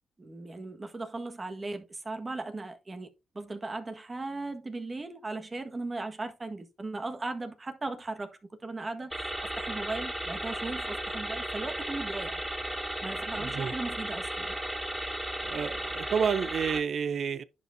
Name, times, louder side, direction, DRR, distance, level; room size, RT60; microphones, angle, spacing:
voice 1, 0.2-3.1 3.3-8.3 8.6-12.4 13.0-14.5, right 2 dB, 30° right, 1.5 m, -37 dB
sound 1, 9.1-16.8, right 1 dB, 10° right, 2.5 m, -35 dB
voice 2, 13.3-13.7 15.5-17.4, right 7 dB, 65° right, 0.5 m, -30 dB
10.5 x 5.4 x 2.7 m
cardioid pair, 70°, 0 cm